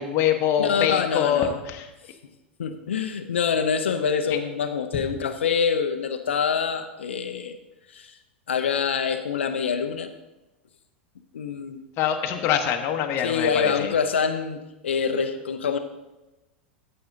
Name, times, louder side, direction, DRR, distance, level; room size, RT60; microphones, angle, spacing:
voice 1, 0.0-1.9 12.0-13.9, left 9 dB, 45° left, 1.0 m, -24 dB
voice 2, 0.6-1.6 2.0-2.2 2.6-7.6 7.9-8.2 8.5-10.1 11.3-11.9 13.2-15.8, left 6 dB, 80° left, 0.6 m, -25 dB
14.0 x 7.7 x 2.7 m
hypercardioid pair, 90°, 6 cm